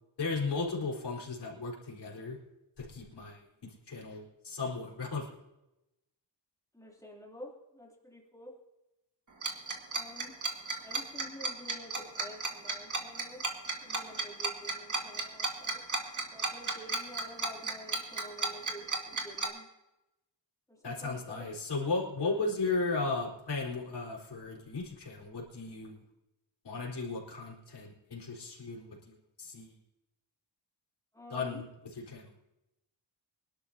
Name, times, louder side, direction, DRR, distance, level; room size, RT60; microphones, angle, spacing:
voice 1, 0.2-2.4 2.8-3.4 3.9-5.3 20.8-26.0 26.6-29.7 31.3-31.6 31.9-32.3, left 3 dB, 60° left, -4 dB, 4.2 m, -35 dB
voice 2, 6.7-8.6 9.9-10.4 10.8-13.4 13.8-15.8 16.3-19.7 20.7-21.8 22.2-22.4 31.1-31.6, equal, 5° left, -2 dB, 3.1 m, -49 dB
Tick-tock, 9.4-19.5, right 3 dB, 40° right, 1.9 m, -33 dB
25.0 x 12.0 x 2.8 m, 0.92 s
wide cardioid pair, 170°, 45 cm